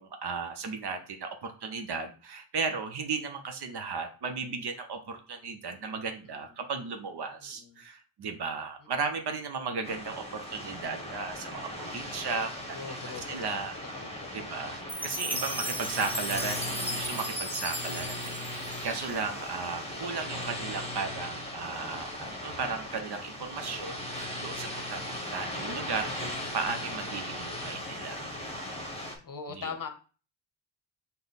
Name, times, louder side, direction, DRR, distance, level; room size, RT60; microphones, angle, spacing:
voice 1, 0.0-12.8 13.3-14.1 14.3-28.3 29.5-29.7, right 5 dB, 55° right, 6 dB, 0.8 m, -35 dB
voice 2, 5.7-6.3 7.4-7.8 8.8-8.9 12.7-13.6 13.9-14.5 15.1-15.2 29.2-29.9, left 5 dB, 45° left, 6 dB, 0.8 m, -42 dB
sound 1, 9.8-29.2, left 1 dB, 15° left, 1.1 m, -38 dB
Chime, 14.9-19.3, equal, 5° right, 0.4 m, -36 dB
5.1 x 2.2 x 4.0 m, 0.38 s
cardioid pair, 80°, 48 cm